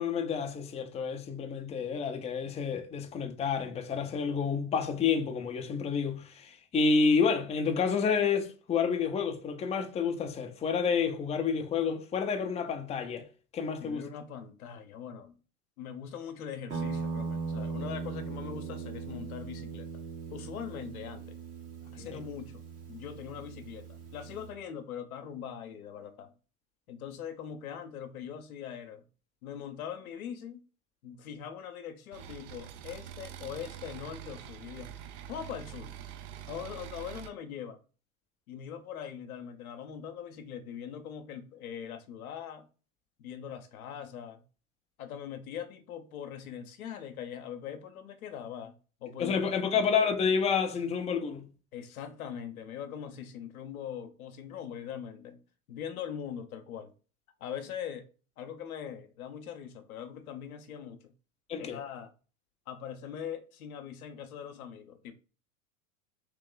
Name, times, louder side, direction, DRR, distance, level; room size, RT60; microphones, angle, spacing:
voice 1, 0.0-13.3 13.5-14.1 22.0-22.2 49.2-51.5 61.5-61.8, left 5 dB, 15° left, 0.5 m, -29 dB
voice 2, 13.8-15.4 15.8-19.9 20.3-21.4 21.9-22.6 22.9-26.3 26.9-29.0 29.4-30.6 31.0-34.9 35.3-35.9 36.5-37.8 38.5-42.7 43.2-44.4 45.0-49.4 49.7-49.8 51.7-55.4 55.7-56.9 57.4-58.1 58.4-61.1 61.6-62.1 62.7-65.1, left 8 dB, 75° left, 0.8 m, -41 dB
Guitar, 16.7-24.5, right 5 dB, 85° right, 1.6 m, -39 dB
sound 1, 32.1-37.3, right 10 dB, 55° right, 0.7 m, -45 dB
3.2 x 3.0 x 3.7 m
hypercardioid pair, 95°, 43 cm